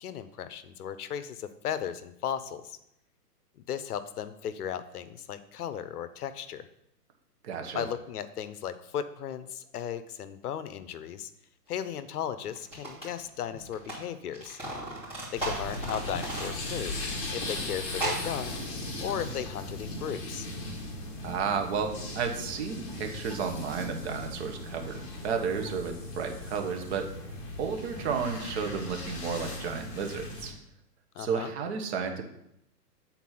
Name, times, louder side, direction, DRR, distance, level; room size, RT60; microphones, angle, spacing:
voice 1, 0.0-2.8 3.6-6.7 7.7-11.3 11.7-14.6 15.3-18.5 19.0-20.5 31.1-31.5, left 9 dB, 65° left, 12 dB, 0.8 m, -36 dB
voice 2, 7.4-7.8 21.2-27.1 27.6-30.5 31.2-32.2, right 6 dB, 40° right, 4 dB, 1.1 m, -32 dB
sound 1, 11.9-12.0 12.6-14.0 14.3-17.0 17.2-17.3 17.9-18.3, right 2 dB, 10° right, 2.9 m, -36 dB
sound 2, 15.4-30.5, left 2 dB, 30° left, 1.7 m, -38 dB
8.2 x 4.3 x 5.8 m, 0.79 s
hypercardioid pair, 150°, 48 cm